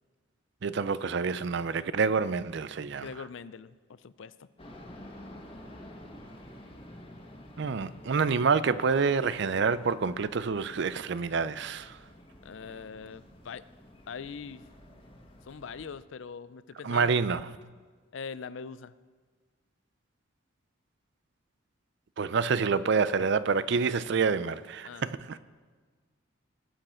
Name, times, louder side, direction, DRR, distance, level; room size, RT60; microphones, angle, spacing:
voice 1, 0.6-3.1 7.6-12.0 16.8-17.5 22.2-25.4, right 5 dB, 55° right, 0.4 m, -27 dB
voice 2, 3.0-4.5 12.4-13.7 14.1-14.6 15.5-17.3 18.1-18.9 24.8-25.1, left 5 dB, 65° left, 0.4 m, -42 dB
sound 1, 4.6-16.0, left 1 dB, 25° left, 1.6 m, -50 dB
20.5 x 7.8 x 4.4 m
head